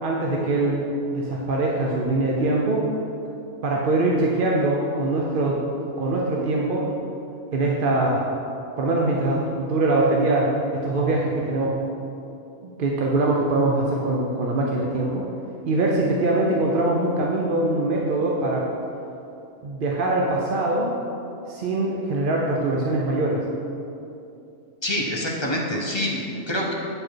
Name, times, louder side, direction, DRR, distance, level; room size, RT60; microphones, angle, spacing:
voice 1, 0.0-2.9 3.6-5.6 6.0-6.9 7.5-8.2 8.8-11.8 12.6-15.3 15.7-18.7 19.6-20.9 21.5-23.4, right 2 dB, 55° right, -2 dB, 0.6 m, -23 dB
voice 2, 24.8-26.7, left 1 dB, 30° left, -2 dB, 0.5 m, -26 dB
8.6 x 4.9 x 4.5 m, 2.8 s
omnidirectional pair, 1.5 m